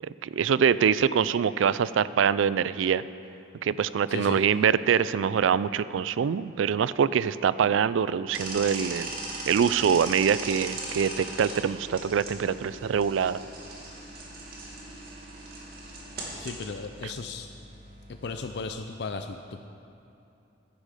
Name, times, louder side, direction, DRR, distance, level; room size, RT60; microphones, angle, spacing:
voice 1, 0.2-3.0 3.6-9.1 9.5-13.4, right 7 dB, 85° right, 17 dB, 0.4 m, -24 dB
voice 2, 4.1-4.4 16.4-17.5 18.1-19.6, left 4 dB, 60° left, 6 dB, 0.5 m, -36 dB
sound 1, 8.3-18.7, right 2 dB, 50° right, 2.2 m, -39 dB
15.0 x 10.0 x 5.0 m, 2.8 s
head